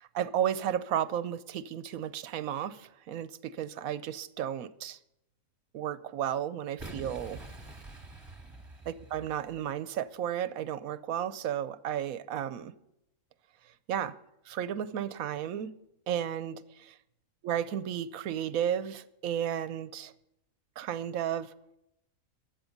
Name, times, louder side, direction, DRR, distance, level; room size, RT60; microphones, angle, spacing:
voice 1, 0.0-5.0 5.7-7.4 8.9-12.7 13.9-14.1 14.5-15.7 16.1-16.9 17.4-20.1 20.8-21.5, right 10 dB, 90° right, 1.1 m, -33 dB
Boom, 6.8-9.8, right 2 dB, 20° right, 1.5 m, -46 dB
15.5 x 11.0 x 5.3 m
omnidirectional pair, 1.4 m